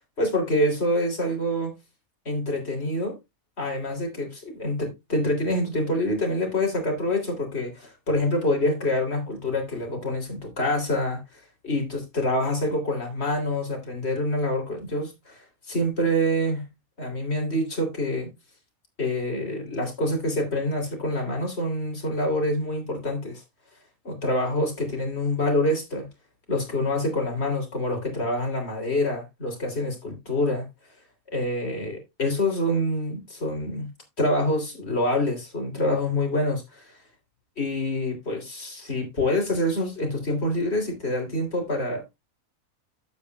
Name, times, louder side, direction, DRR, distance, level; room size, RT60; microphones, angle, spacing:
voice 1, 0.2-1.7 2.3-3.2 3.6-16.6 17.0-18.3 19.0-23.4 24.1-26.1 26.5-30.7 31.3-33.9 34.2-37.0 37.6-42.2, left 1 dB, 45° left, 3.6 m, -26 dB
12.0 x 8.5 x 2.3 m
omnidirectional pair, 1.5 m